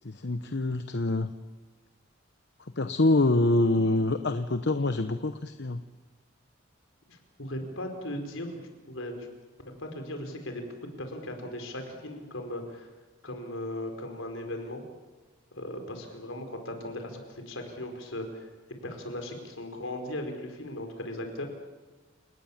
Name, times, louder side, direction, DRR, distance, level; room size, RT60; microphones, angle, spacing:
voice 1, 0.0-1.3 2.8-5.8, left 2 dB, 55° left, 9 dB, 0.9 m, -25 dB
voice 2, 7.1-9.3 9.8-12.9 13.2-14.8 15.5-18.5 18.8-21.4, left 1 dB, 75° left, 4 dB, 4.8 m, -38 dB
29.5 x 18.5 x 7.4 m, 1.3 s
head